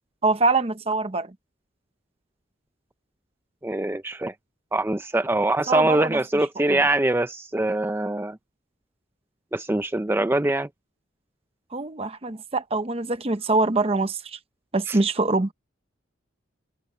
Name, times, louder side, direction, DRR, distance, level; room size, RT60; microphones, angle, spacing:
voice 1, 0.2-1.3 5.7-6.2 6.7-6.8 11.7-14.4 14.7-15.5, right 3 dB, 30° right, 0.8 m, -24 dB
voice 2, 3.6-4.3 4.7-8.4 9.5-10.7 14.9-15.0, right 1 dB, 10° right, 0.5 m, -23 dB
head